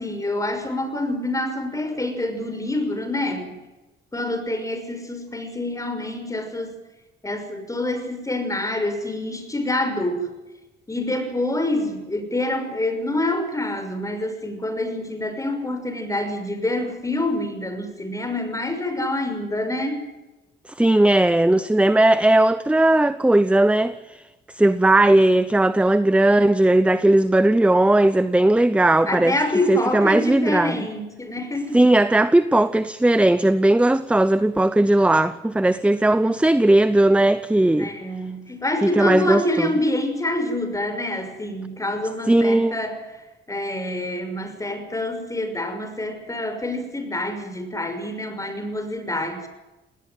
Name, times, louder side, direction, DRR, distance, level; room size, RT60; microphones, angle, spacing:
voice 1, 0.0-3.5 4.1-6.8 7.2-10.3 10.9-20.0 29.1-31.8 37.8-43.0 43.5-49.5, left 1 dB, 15° left, 6.0 m, -26 dB
voice 2, 20.8-24.2 24.5-29.3 29.7-30.8 31.7-37.9 38.8-39.7 42.3-42.8, right 1 dB, 5° right, 0.8 m, -17 dB
20.0 x 18.5 x 9.3 m
cardioid pair, 90°, 20 cm